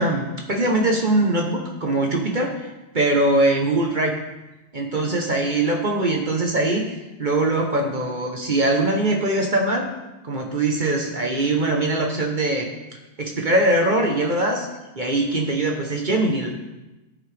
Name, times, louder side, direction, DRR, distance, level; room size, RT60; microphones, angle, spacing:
voice 1, 0.0-4.1 4.7-6.8 7.2-9.9 10.2-12.7 13.2-14.7 15.0-16.5, right 2 dB, 45° right, 2 dB, 0.6 m, -22 dB
11.5 x 8.7 x 3.4 m, 1.0 s
omnidirectional pair, 2.4 m